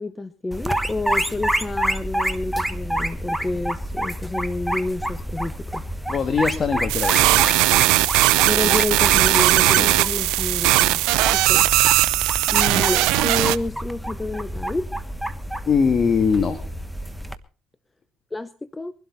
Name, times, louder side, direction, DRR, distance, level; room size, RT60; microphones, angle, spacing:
voice 1, 0.0-5.8 8.4-11.0 11.3-11.7 12.5-14.9 18.3-18.9, left 2 dB, 15° left, 14 dB, 0.8 m, -29 dB
sound 1, 0.5-17.3, equal, ahead, 1.2 m, -28 dB
voice 2, 6.1-7.5 9.6-9.9 15.7-16.6, left 6 dB, 40° left, 9 dB, 1.9 m, -22 dB
sound 2, 6.9-13.6, right 19 dB, 80° right, 0.6 m, -18 dB
23.0 x 12.0 x 4.1 m, 0.37 s
supercardioid pair, 90°, 0 cm